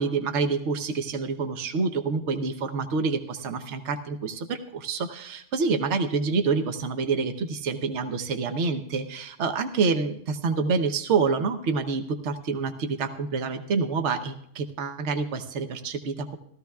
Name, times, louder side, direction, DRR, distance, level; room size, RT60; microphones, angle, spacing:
voice 1, 0.0-16.4, right 4 dB, 70° right, 7 dB, 1.2 m, -27 dB
17.0 x 14.0 x 2.3 m, 0.69 s
omnidirectional pair, 1.3 m